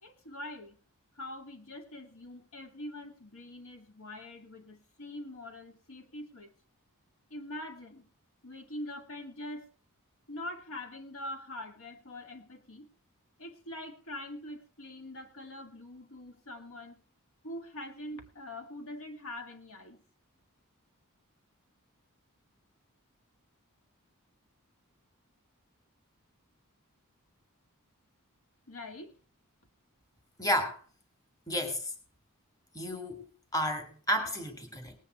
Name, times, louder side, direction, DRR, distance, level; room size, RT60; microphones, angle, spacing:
voice 1, 0.0-0.8 1.1-6.5 7.3-8.1 8.4-9.7 10.3-12.9 13.4-17.0 17.4-20.0 28.7-29.1, left 1 dB, 65° left, 5 dB, 2.3 m, -43 dB
voice 2, 30.4-30.8 31.5-31.9 32.7-33.3 33.5-34.9, equal, 15° left, 5 dB, 2.1 m, -31 dB
19.0 x 9.0 x 4.6 m, 0.37 s
head